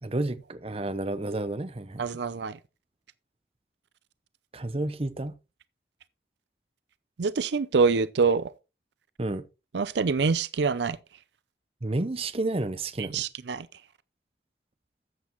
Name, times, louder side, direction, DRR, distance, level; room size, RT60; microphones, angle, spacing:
voice 1, 0.0-2.1 4.5-5.3 9.2-9.4 11.8-13.2, right 2 dB, 30° right, 0.8 m, -31 dB
voice 2, 2.0-2.6 7.2-8.5 9.7-11.0 13.0-13.7, right 5 dB, 70° right, 0.5 m, -25 dB
13.0 x 8.3 x 3.0 m
head